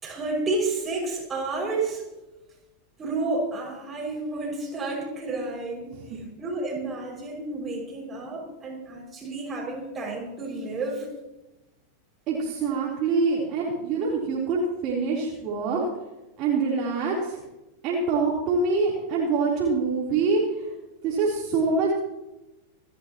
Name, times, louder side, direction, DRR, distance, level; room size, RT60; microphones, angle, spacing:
voice 1, 0.0-2.0 3.0-11.1, right 3 dB, 20° right, 0 dB, 6.0 m, -31 dB
voice 2, 12.3-15.8 16.4-17.4 17.8-20.7 21.0-21.9, right 4 dB, 35° right, -4 dB, 3.6 m, -25 dB
28.0 x 11.5 x 3.0 m, 0.99 s
figure-of-eight pair, 90°, 0 cm